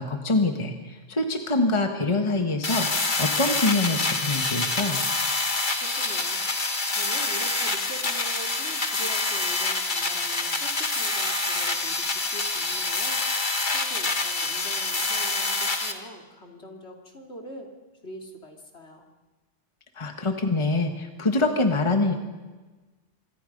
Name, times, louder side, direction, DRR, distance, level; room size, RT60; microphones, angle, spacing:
voice 1, 0.0-5.0 19.9-22.1, left 2 dB, 25° left, 5 dB, 1.6 m, -25 dB
sound 1, 2.6-15.9, left 3 dB, 40° left, 1.9 m, -26 dB
voice 2, 5.8-6.4 6.9-17.7 18.0-19.1, equal, 60° left, 2 dB, 3.3 m, -43 dB
25.5 x 24.5 x 5.4 m, 1.3 s
omnidirectional pair, 1.3 m